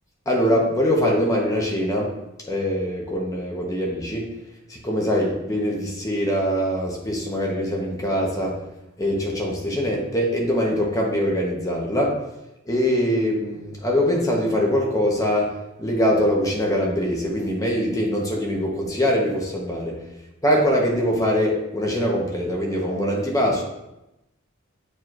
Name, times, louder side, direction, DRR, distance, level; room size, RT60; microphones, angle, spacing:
voice 1, 0.3-2.1 2.4-4.3 4.7-8.6 9.0-12.2 12.7-15.5 15.8-20.0 20.4-23.6, equal, 15° left, -2 dB, 1.1 m, -23 dB
7.9 x 4.7 x 2.6 m, 0.92 s
head